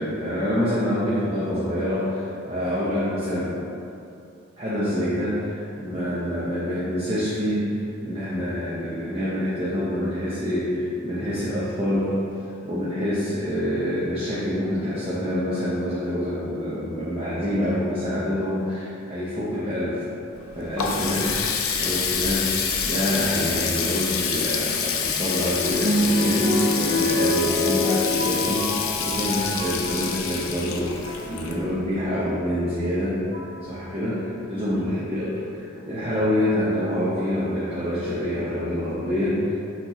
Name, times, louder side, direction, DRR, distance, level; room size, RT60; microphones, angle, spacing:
voice 1, 0.0-3.6 4.6-12.2 12.6-20.0 20.5-21.3 21.8-22.5 22.8-33.2 33.6-39.5, equal, 30° right, -10 dB, 0.7 m, -26 dB
Water tap faucet, 20.3-32.0, left 6 dB, 90° left, 0.4 m, -27 dB
sound 1, 24.5-30.1 30.8-31.3 32.5-32.6 33.3-33.6 35.8-36.4 37.1-37.2 37.4-37.5, left 1 dB, 75° right, 1.3 m, -26 dB
5.8 x 2.8 x 2.9 m, 2.6 s
head